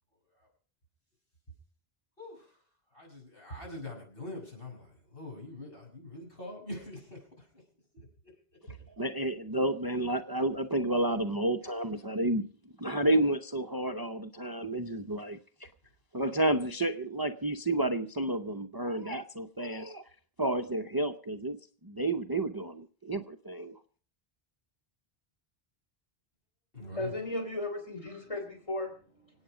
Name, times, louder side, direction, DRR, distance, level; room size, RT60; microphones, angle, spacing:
voice 1, 2.9-7.2 7.9-8.3 8.7-8.8 26.7-27.2, left 1 dB, 65° left, -1 dB, 6.5 m, -43 dB
voice 2, 9.0-12.5 12.8-15.4 16.1-20.0 20.4-21.6 21.8-23.8, right 1 dB, 25° right, 8 dB, 0.7 m, -30 dB
voice 3, 26.8-29.3, left 2 dB, 30° left, 3 dB, 3.5 m, -36 dB
26.0 x 9.0 x 5.0 m, 0.42 s
omnidirectional pair, 1.0 m